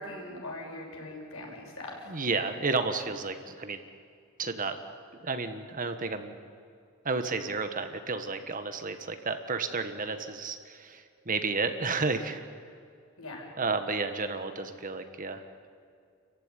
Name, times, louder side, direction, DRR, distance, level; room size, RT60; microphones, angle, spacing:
voice 1, 0.0-2.1 13.2-13.4, left 1 dB, 70° left, -1 dB, 7.0 m, -41 dB
voice 2, 2.1-3.8 4.4-4.8 5.2-6.3 7.0-12.4 13.6-15.4, right 4 dB, 40° right, 8 dB, 1.4 m, -32 dB
29.5 x 15.5 x 9.8 m, 2.3 s
head